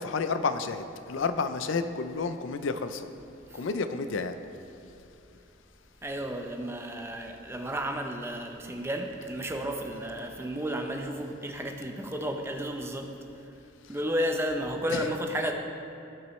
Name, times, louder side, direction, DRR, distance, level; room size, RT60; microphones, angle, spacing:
voice 1, 0.0-3.1 3.5-4.3 14.9-15.0, left 4 dB, 65° left, 9 dB, 0.4 m, -30 dB
voice 2, 6.0-13.1 13.9-15.5, equal, 10° right, 3 dB, 0.6 m, -32 dB
16.5 x 6.0 x 3.1 m, 2.8 s
head